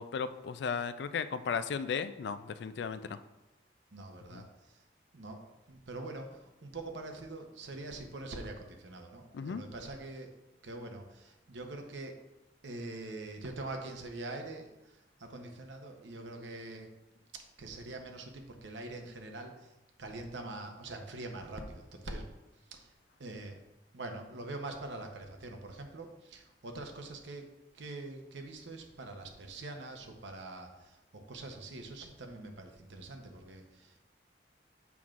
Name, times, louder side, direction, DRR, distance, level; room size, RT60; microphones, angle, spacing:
voice 1, 0.0-3.2 4.3-4.4 9.3-9.6, left 6 dB, 70° left, 12 dB, 0.3 m, -35 dB
voice 2, 3.9-4.8 5.1-10.3 10.6-12.2 12.6-16.9 17.3-19.7 20.0-22.3 22.7-22.9 23.2-23.6 23.9-34.0, right 2 dB, 80° right, 4 dB, 0.8 m, -44 dB
7.0 x 6.0 x 2.5 m, 0.97 s
head